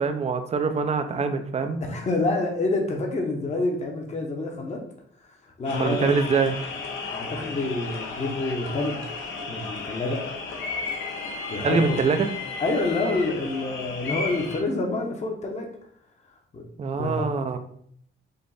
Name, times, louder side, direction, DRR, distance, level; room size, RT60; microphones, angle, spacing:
voice 1, 0.0-1.8 5.7-6.6 11.6-12.3 16.8-17.6, right 5 dB, 35° right, 8 dB, 0.5 m, -24 dB
voice 2, 1.8-4.8 5.6-6.2 7.1-9.0 9.5-10.2 11.5-12.0 12.6-15.7 16.5-17.3, left 2 dB, 35° left, 1 dB, 1.0 m, -27 dB
sound 1, 5.6-14.6, left 4 dB, 75° left, 1.1 m, -34 dB
5.2 x 2.5 x 4.1 m, 0.64 s
cardioid pair, 90°, 20 cm